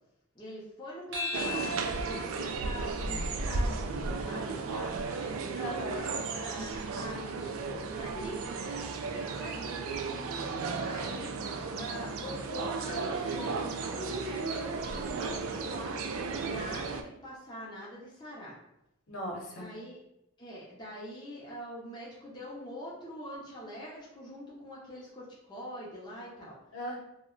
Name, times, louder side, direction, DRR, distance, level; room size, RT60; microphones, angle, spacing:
voice 1, 0.3-5.4 6.3-9.8 10.8-11.3 11.7-16.1 16.4-18.6 19.5-20.0 20.4-26.6, equal, 20° left, -6 dB, 0.5 m, -43 dB
sound 1, 1.1-5.9, left 4 dB, 55° right, 0.7 m, -42 dB
sound 2, 1.3-17.0, right 4 dB, 70° right, 0.3 m, -34 dB
voice 2, 5.6-6.1 10.1-10.6 19.1-19.7 26.7-27.0, equal, 75° left, -3 dB, 0.8 m, -39 dB
2.3 x 2.0 x 3.6 m, 0.85 s
head